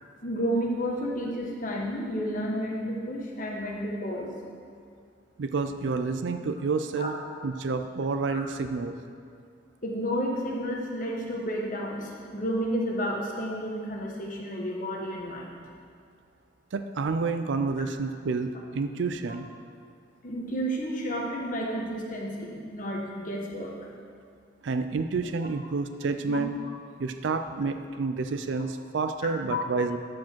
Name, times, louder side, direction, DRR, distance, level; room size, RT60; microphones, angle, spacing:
voice 1, 0.2-4.3 7.0-7.1 8.3-8.4 9.8-15.5 20.2-23.7 26.3-26.4 29.5-29.6, equal, 45° left, -2 dB, 1.3 m, -31 dB
voice 2, 5.4-7.1 7.4-8.9 16.7-19.5 24.6-26.5 27.0-30.0, right 4 dB, 65° right, 8 dB, 0.4 m, -29 dB
13.0 x 4.9 x 4.5 m, 2.2 s
head